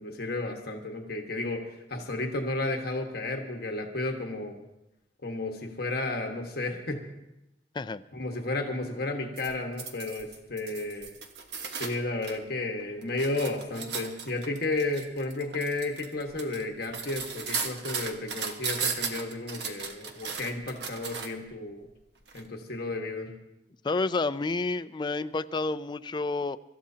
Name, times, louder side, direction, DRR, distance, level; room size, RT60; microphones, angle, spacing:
voice 1, 0.0-4.6 5.2-7.0 8.1-11.2 11.8-21.9 22.3-23.3, left 2 dB, 60° left, 2 dB, 1.5 m, -33 dB
sound 1, 9.4-12.4 12.8-21.5 22.3-22.4, right 5 dB, 70° right, 1.2 m, -36 dB
voice 2, 23.8-26.6, left 3 dB, 25° left, 12 dB, 0.4 m, -29 dB
25.0 x 13.5 x 2.8 m, 0.91 s
head